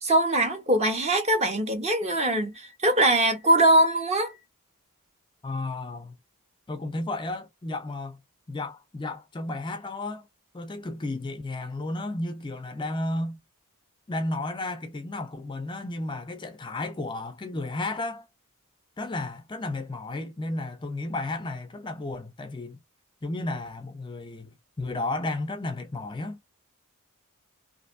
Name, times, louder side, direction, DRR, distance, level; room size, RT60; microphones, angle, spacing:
voice 1, 0.0-4.4, right 1 dB, 30° right, 1.0 m, -22 dB
voice 2, 5.4-6.1 6.7-8.2 8.5-10.3 10.5-13.4 14.1-18.3 19.0-22.8 23.2-26.4, left 2 dB, 20° left, 0.4 m, -33 dB
3.3 x 2.6 x 2.5 m
head